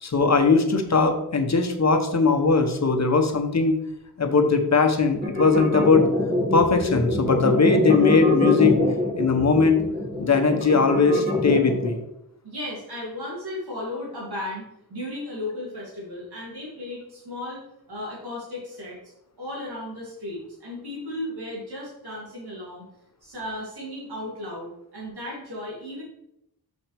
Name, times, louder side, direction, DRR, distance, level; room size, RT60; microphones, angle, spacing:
voice 1, 0.0-3.8 4.2-6.1 6.5-8.8 9.2-9.8 10.2-12.0, left 4 dB, 45° left, 6 dB, 1.0 m, -20 dB
sound 1, 5.2-12.0, left 2 dB, 25° right, 2.1 m, -24 dB
voice 2, 12.4-17.6 17.9-19.0 19.4-22.8 23.2-26.0, left 1 dB, 75° right, -6 dB, 2.8 m, -35 dB
6.3 x 5.8 x 3.4 m, 0.80 s
cardioid pair, 65°, 38 cm